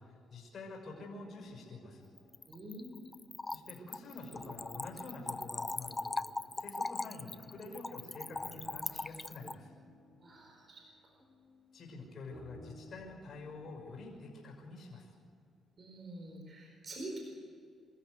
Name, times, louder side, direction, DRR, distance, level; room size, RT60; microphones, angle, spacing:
voice 1, 0.0-2.1 3.5-9.7 11.7-15.1, left 3 dB, 55° left, 0 dB, 5.9 m, -48 dB
sound 1, 0.9-14.3, left 1 dB, 5° left, 5.3 m, -60 dB
Splash splatter / Trickle dribble, 2.2-9.6, left 3 dB, 20° left, 0.5 m, -40 dB
voice 2, 2.5-3.2 10.2-10.8 15.8-17.2, right 1 dB, 40° right, 0 dB, 4.5 m, -46 dB
25.5 x 14.0 x 8.2 m, 2.4 s
cardioid pair, 90°, 0 cm